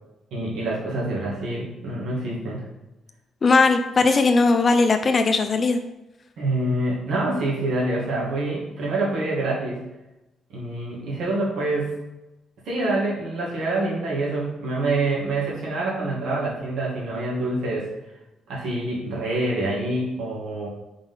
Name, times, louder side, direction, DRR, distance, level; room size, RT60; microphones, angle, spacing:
voice 1, 0.3-2.6 6.4-9.8 10.5-12.0 12.6-17.9 18.5-20.7, right 2 dB, 75° right, -5 dB, 2.0 m, -26 dB
voice 2, 3.4-5.8, left 3 dB, 40° left, 7 dB, 0.5 m, -18 dB
4.8 x 4.0 x 5.5 m, 0.97 s
cardioid pair, 90°, 0 cm